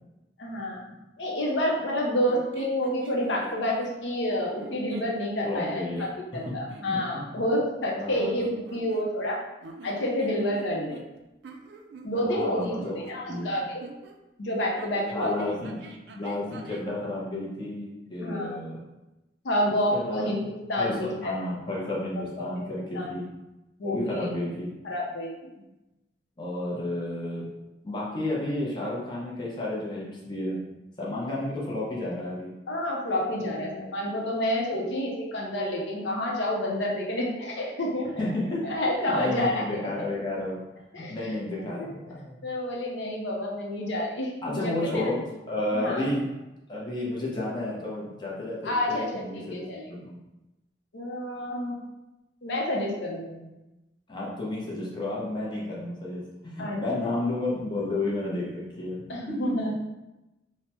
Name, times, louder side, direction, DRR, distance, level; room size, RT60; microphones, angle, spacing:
voice 1, 0.4-0.8 1.2-9.4 9.8-11.0 12.0-13.8 14.4-15.5 18.2-18.5 19.4-21.4 22.5-23.1 23.8-24.3 24.8-25.3 32.7-38.1 38.6-39.6 40.9-41.9 42.4-45.0 45.7-46.1 48.6-49.9 50.9-51.8 52.4-53.5 56.6-57.1 59.1-59.8, left 1 dB, 80° left, -2 dB, 0.6 m, -29 dB
sound 1, 2.3-4.0 4.6-5.2 5.6-6.9 8.1-9.3 9.6-14.2 14.8-16.9, right 3 dB, 65° right, 0.3 m, -45 dB
voice 2, 5.4-6.1 6.9-7.2 8.0-8.3 12.3-13.0 13.3-13.5 15.1-15.8 16.1-18.8 19.9-20.3 20.8-23.2 23.8-24.8 26.4-27.5 27.8-30.6 31.0-32.5 33.4-33.9 38.2-40.6 41.1-42.4 44.4-45.2 45.5-46.2 46.7-50.2 54.1-59.0, left 1 dB, 25° left, -5 dB, 0.6 m, -31 dB
3.3 x 2.0 x 2.9 m, 1.0 s
head